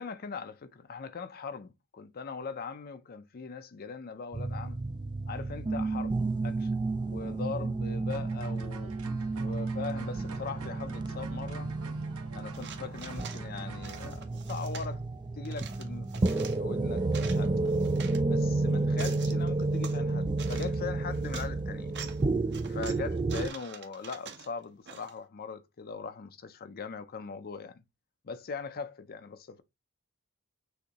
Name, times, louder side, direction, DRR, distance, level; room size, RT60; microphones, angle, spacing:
voice 1, 0.0-4.8 5.3-6.7 7.0-8.9 9.4-11.7 12.3-15.0 15.3-17.5 18.2-21.9 22.7-27.8 28.2-29.6, left 5 dB, 45° left, 0.5 m, -40 dB
sound 1, 4.3-23.5, right 3 dB, 20° right, 0.3 m, -31 dB
sound 2, 8.1-14.2, right 3 dB, 70° right, 1.1 m, -47 dB
sound 3, 12.5-13.4 13.8-14.9 15.4-16.6 17.0-18.2 18.7-20.0 20.4-20.8 21.1-21.5 21.9-22.2 22.5-25.2, right 7 dB, 50° right, 0.8 m, -45 dB
6.4 x 2.6 x 2.9 m
head